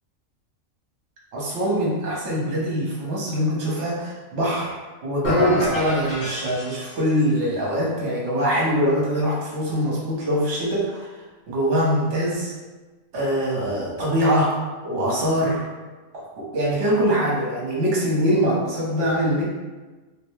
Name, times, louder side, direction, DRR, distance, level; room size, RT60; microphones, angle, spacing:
voice 1, 1.3-4.7 5.0-11.1 11.5-12.5 13.1-14.5 14.8-15.7 16.1-19.4, equal, 65° right, -5 dB, 1.2 m, -23 dB
sound 1, 5.2-7.3, equal, 45° left, 1.2 m, -28 dB
3.3 x 2.2 x 3.1 m, 1.3 s
omnidirectional pair, 1.4 m